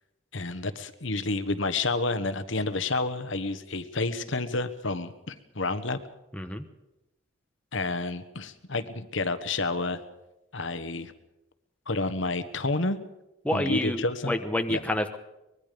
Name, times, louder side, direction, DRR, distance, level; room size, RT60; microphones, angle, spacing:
voice 1, 0.3-6.0 7.7-10.0 10.5-11.1 11.9-13.0 13.5-14.4 14.7-14.8, left 3 dB, 65° left, 10 dB, 1.4 m, -29 dB
voice 2, 6.3-6.7 13.4-15.2, left 1 dB, 5° left, 6 dB, 1.1 m, -28 dB
24.5 x 21.5 x 5.2 m, 0.93 s
head